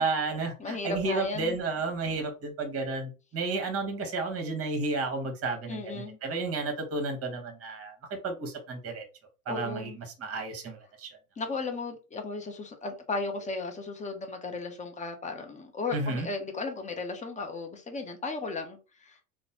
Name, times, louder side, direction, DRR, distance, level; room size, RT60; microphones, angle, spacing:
voice 1, 0.0-9.0 9.5-11.1 15.9-16.3, right 3 dB, 35° right, 5 dB, 1.1 m, -32 dB
voice 2, 0.6-1.6 5.7-6.2 9.5-10.0 11.4-19.2, left 3 dB, 15° left, 5 dB, 0.5 m, -35 dB
2.9 x 2.0 x 2.8 m, 0.31 s
hypercardioid pair, 95°, 42 cm